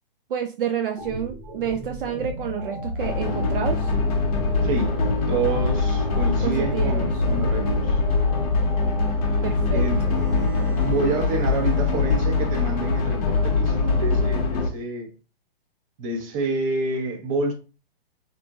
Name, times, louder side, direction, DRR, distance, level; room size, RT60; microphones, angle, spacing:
voice 1, 0.3-3.9 6.4-7.8 9.4-9.8, right 8 dB, 65° right, 0.5 m, -29 dB
sound 1, 1.0-10.9, equal, 85° right, 1.3 m, -35 dB
sound 2, 3.0-14.7, left 4 dB, 40° left, 0.7 m, -23 dB
voice 2, 4.6-5.0 5.3-8.0 9.7-10.0 10.8-15.1 16.0-17.5, right 3 dB, 35° right, 0.8 m, -28 dB
Bowed string instrument, 9.7-13.5, right 1 dB, 10° right, 0.5 m, -37 dB
2.9 x 2.5 x 2.3 m
hypercardioid pair, 145°, 30 cm